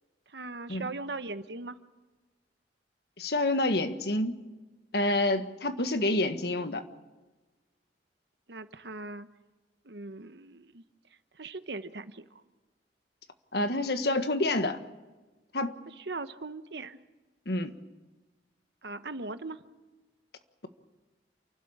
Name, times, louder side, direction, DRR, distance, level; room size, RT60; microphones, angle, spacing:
voice 1, 0.3-1.8 8.5-9.3 9.8-10.8 11.4-12.2 16.0-17.0 18.8-19.6, right 3 dB, 75° right, 11 dB, 1.1 m, -39 dB
voice 2, 3.2-4.4 4.9-6.8 13.5-14.8 15.5-15.7 17.4-17.7, left 2 dB, 65° left, 8 dB, 1.6 m, -28 dB
29.0 x 12.5 x 8.8 m, 1.2 s
head